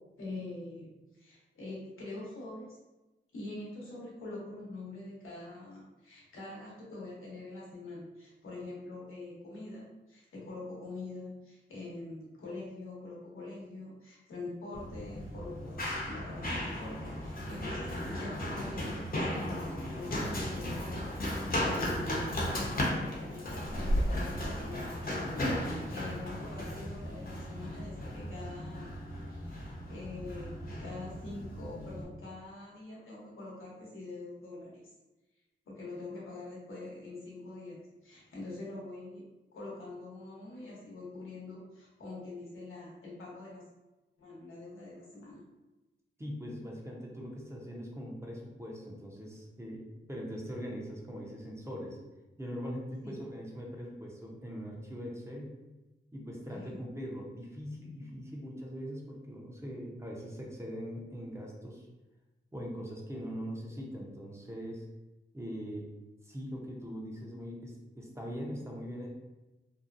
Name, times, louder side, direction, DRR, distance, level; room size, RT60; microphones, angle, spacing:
voice 1, 0.0-2.8 3.3-15.8 16.1-29.0 29.4-34.8 35.7-39.2 39.5-43.6 44.2-45.4 53.0-53.2 56.5-56.8, left 2 dB, 90° left, -5 dB, 0.9 m, -44 dB
Run, 14.7-32.0, left 1 dB, 45° left, 0.7 m, -35 dB
voice 2, 46.2-49.8 50.1-52.0 52.4-55.5 56.1-61.9 62.5-64.8 65.3-65.9 66.2-69.1, equal, 15° right, -2 dB, 0.6 m, -41 dB
2.7 x 2.1 x 2.4 m, 1.1 s
cardioid pair, 60°, 20 cm